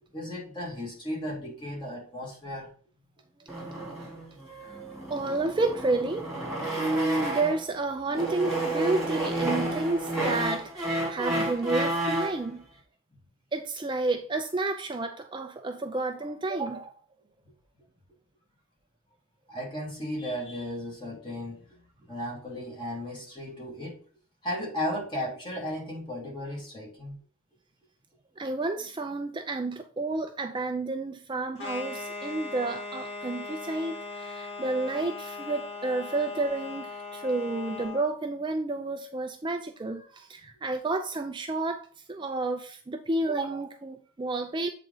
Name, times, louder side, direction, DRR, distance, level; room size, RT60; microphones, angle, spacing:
voice 1, 0.1-2.7 13.1-13.2 19.5-24.0 24.4-27.2, left 1 dB, 25° left, 2.5 m, -35 dB
sound 1, 3.5-7.7 8.1-12.4, right 2 dB, ahead, 2.9 m, -31 dB
voice 2, 5.1-6.3 6.8-12.6 13.5-16.9 28.4-44.7, right 2 dB, 25° right, 0.5 m, -30 dB
sound 2, 31.6-38.1, left 3 dB, 55° left, 1.6 m, -39 dB
7.8 x 4.1 x 3.9 m
head